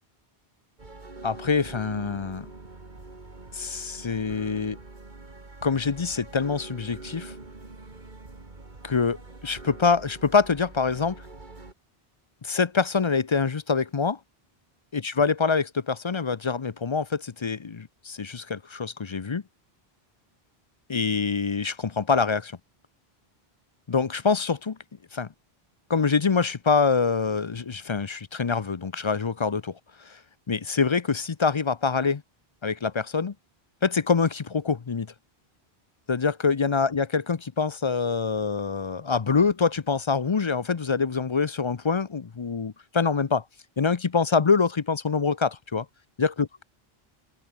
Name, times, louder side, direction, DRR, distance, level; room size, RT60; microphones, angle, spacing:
sound 1, 0.8-11.7, right 3 dB, 50° right, 2.6 m, -44 dB
voice 1, 1.2-2.5 3.5-4.8 5.6-7.3 8.8-9.2 9.4-11.2 12.4-14.2 14.9-19.4 20.9-22.6 23.9-24.8 25.1-25.3 25.9-29.7 30.1-30.2 30.5-32.2 32.6-33.3 33.8-35.1 36.1-43.4 43.8-45.9 46.2-46.6, left 5 dB, 35° left, 0.6 m, -25 dB
omnidirectional pair, 1.0 m